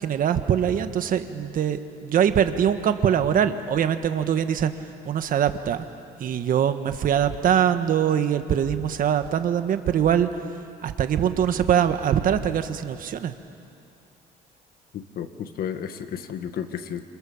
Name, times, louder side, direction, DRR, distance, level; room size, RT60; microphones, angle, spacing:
voice 1, 0.0-4.7 5.0-5.8 6.2-10.3 10.8-13.3, right 9 dB, 55° right, 9 dB, 1.5 m, -23 dB
voice 2, 14.9-17.0, left 8 dB, 60° left, 8 dB, 1.8 m, -32 dB
28.0 x 27.0 x 7.3 m, 2.6 s
cardioid pair, 110°, 17 cm